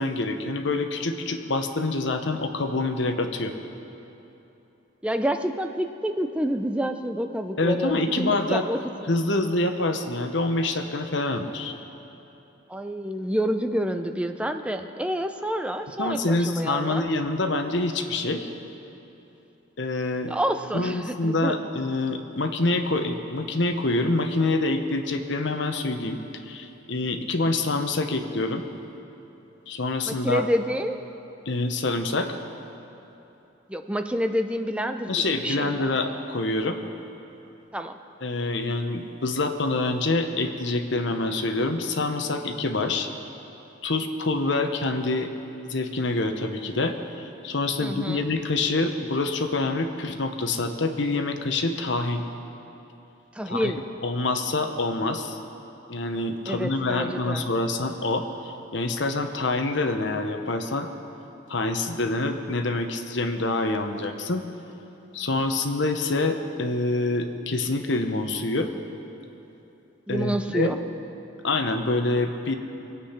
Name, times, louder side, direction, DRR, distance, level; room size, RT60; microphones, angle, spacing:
voice 1, 0.0-3.5 7.6-8.6 9.1-11.7 16.0-18.5 19.8-20.3 20.7-26.2 26.5-28.6 29.7-30.4 31.4-32.4 35.1-36.8 38.2-43.1 43.8-45.3 45.6-52.2 53.5-53.7 54.0-55.4 55.9-60.9 61.5-64.4 65.1-68.7 70.1-70.8 71.4-72.6, left 2 dB, 65° left, 6 dB, 1.0 m, -26 dB
voice 2, 5.0-9.1 12.7-17.0 20.3-21.6 30.0-31.0 33.7-35.8 37.7-38.0 47.8-48.2 53.3-53.8 56.5-57.5 70.1-70.8, equal, 5° right, 7 dB, 0.5 m, -28 dB
21.0 x 8.6 x 5.8 m, 3.0 s
head